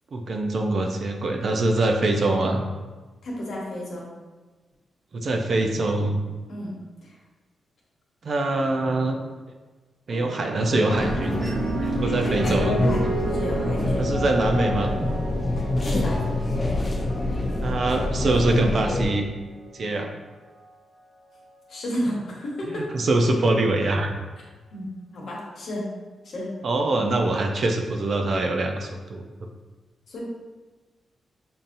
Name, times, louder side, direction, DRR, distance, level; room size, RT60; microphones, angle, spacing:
voice 1, 0.1-2.6 5.1-6.2 8.2-9.2 10.1-12.8 14.0-15.1 17.6-19.3 19.7-20.1 22.7-24.1 26.6-29.3, right 2 dB, 55° right, 3 dB, 0.5 m, -24 dB
voice 2, 3.2-4.1 6.5-6.7 7.0-7.1 12.2-14.2 15.8-16.2 21.7-22.9 24.7-25.8 26.2-26.5 30.1-30.2, left 1 dB, 65° left, -4 dB, 1.2 m, -32 dB
sound 1, 10.1-18.7 19.6-20.0, right 3 dB, 70° right, 0.9 m, -32 dB
sound 2, 10.9-19.1, left 2 dB, 25° left, 0.6 m, -26 dB
5.4 x 2.7 x 2.6 m, 1.3 s
cardioid pair, 100°, 0 cm